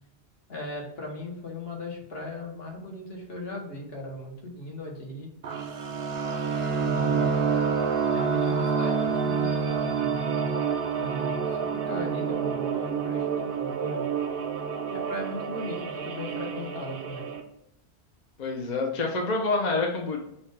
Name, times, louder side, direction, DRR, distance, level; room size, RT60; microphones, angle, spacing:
voice 1, 0.5-5.3 6.8-7.3 8.1-10.6 11.0-11.6 11.9-14.1 14.9-17.3, left 1 dB, 60° left, -1 dB, 1.3 m, -38 dB
sound 1, 5.4-17.4, right 6 dB, 60° right, 0.8 m, -28 dB
voice 2, 18.4-20.2, left 3 dB, 45° left, 1 dB, 0.7 m, -27 dB
5.7 x 2.3 x 3.2 m, 0.82 s
omnidirectional pair, 1.1 m